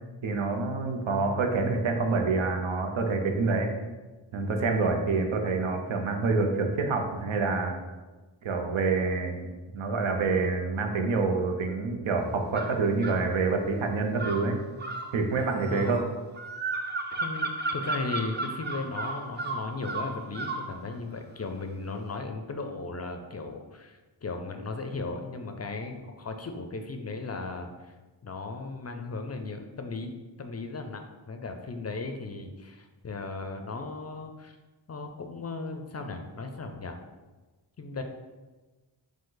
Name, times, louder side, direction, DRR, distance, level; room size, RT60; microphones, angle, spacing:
voice 1, 0.2-3.7 4.3-7.7 8.4-14.6 15.1-16.1, right 4 dB, 85° right, 4 dB, 0.7 m, -27 dB
sound 1, 12.5-13.2 14.2-20.7, right 3 dB, 25° right, 0.4 m, -34 dB
voice 2, 15.6-16.0 16.7-27.9 28.2-34.6 34.9-37.0 37.8-38.0, left 3 dB, 35° left, 5 dB, 0.4 m, -36 dB
5.1 x 2.1 x 3.8 m, 1.2 s
wide cardioid pair, 70°, 47 cm